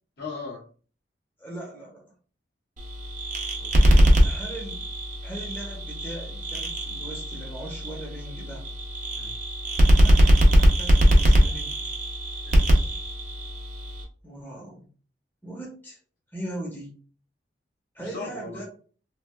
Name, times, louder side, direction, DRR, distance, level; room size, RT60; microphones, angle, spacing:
voice 1, 0.2-0.6 3.6-4.0 9.1-9.3 12.4-12.9 18.0-18.6, left 4 dB, 60° left, -2 dB, 1.1 m, -39 dB
voice 2, 1.4-2.0 4.2-4.9 5.2-8.6 9.9-11.8 14.2-14.9 15.4-16.0 16.3-16.9 17.9-18.6, right 1 dB, 10° left, -4 dB, 0.7 m, -39 dB
sound 1, 2.8-14.0, equal, 45° right, 0.5 m, -21 dB
3.2 x 2.4 x 2.2 m, 0.40 s
head